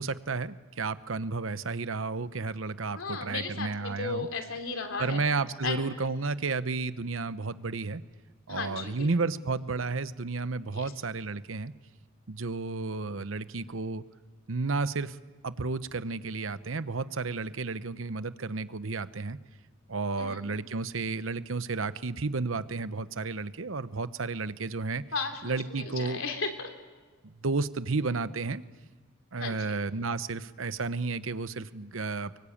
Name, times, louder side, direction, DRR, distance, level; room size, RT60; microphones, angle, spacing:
voice 1, 0.0-4.3 5.0-8.0 8.5-11.7 12.3-14.0 14.5-15.2 15.4-19.4 19.9-25.0 25.4-26.2 27.2-28.6 29.3-32.4, right 3 dB, 80° right, 14 dB, 0.9 m, -32 dB
voice 2, 2.9-5.2 5.6-5.8 8.5-9.1 10.7-10.9 20.2-20.7 25.1-26.7 29.4-29.8, left 4 dB, 90° left, 5 dB, 3.2 m, -35 dB
24.0 x 24.0 x 8.6 m, 1.3 s
head